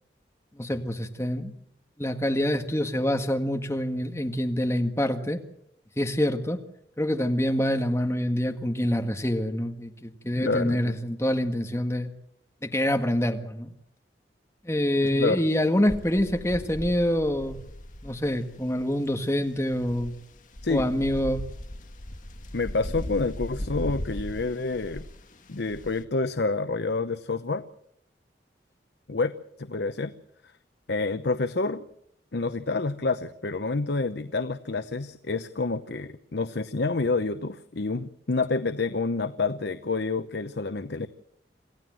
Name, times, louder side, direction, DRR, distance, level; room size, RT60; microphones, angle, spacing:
voice 1, 0.5-1.5 2.0-5.4 6.0-6.6 7.0-12.1 12.6-13.7 14.6-17.6 18.0-20.1 20.7-21.4, equal, 15° left, 5 dB, 1.8 m, -26 dB
voice 2, 10.4-11.0 15.0-15.4 20.6-20.9 22.5-25.1 25.5-27.6 29.1-29.3 29.6-30.1 30.9-31.8 32.3-41.1, left 3 dB, 70° left, 11 dB, 0.8 m, -28 dB
sound 1, 15.9-26.0, equal, 45° left, 1.7 m, -38 dB
27.5 x 15.5 x 7.7 m, 0.75 s
head